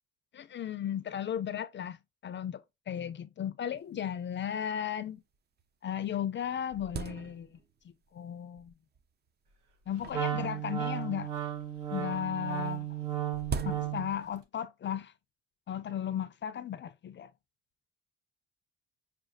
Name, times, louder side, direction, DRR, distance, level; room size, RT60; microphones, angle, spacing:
voice 1, 0.3-5.2 5.8-7.6 7.8-8.8 9.9-11.3 11.9-13.0 13.6-15.1 15.7-17.3, left 9 dB, 40° left, 0.4 m, -35 dB
sound 1, 3.8-3.9 4.1-4.2 4.9-5.0 5.6-5.7 6.0-7.8 8.6-9.0 9.9-11.3 12.5-14.3, right 6 dB, 35° right, 0.4 m, -41 dB
Wind instrument woodwind instrument, 10.1-14.2, right 10 dB, 80° right, 0.9 m, -34 dB
5.8 x 2.3 x 2.5 m
cardioid pair, 90°, 30 cm